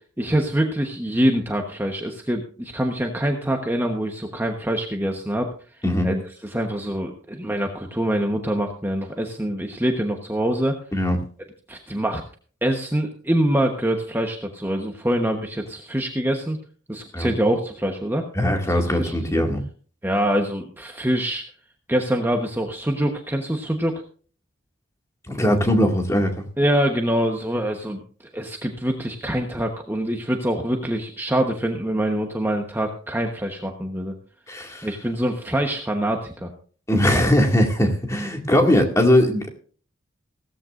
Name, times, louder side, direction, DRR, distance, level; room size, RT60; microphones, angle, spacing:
voice 1, 0.2-5.5 6.0-10.8 11.7-12.2 12.6-16.6 16.9-18.3 19.0-19.4 20.0-21.4 21.9-23.9 26.6-28.0 28.3-34.1 34.8-36.5, right 1 dB, 10° right, 2 dB, 1.1 m, -24 dB
voice 2, 18.3-19.6 25.3-26.4 34.5-34.9 36.9-39.5, left 1 dB, 15° left, 2 dB, 2.1 m, -20 dB
16.5 x 14.0 x 2.5 m, 0.42 s
head